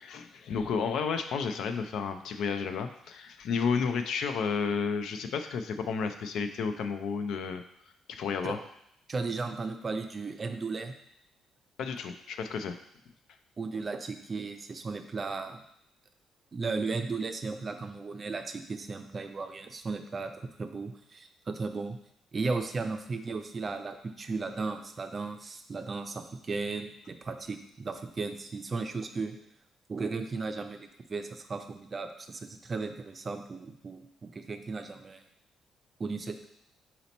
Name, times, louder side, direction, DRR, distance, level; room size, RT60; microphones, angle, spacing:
voice 1, 0.0-7.6 8.1-8.6 11.8-12.8, left 5 dB, 75° left, 7 dB, 0.4 m, -32 dB
voice 2, 9.1-10.9 13.6-15.6 16.5-20.3 20.6-22.0 22.3-29.4 29.9-35.2 36.0-36.5, right 4 dB, 35° right, 7 dB, 0.4 m, -35 dB
4.2 x 2.9 x 4.0 m, 0.73 s
cardioid pair, 90°, 0 cm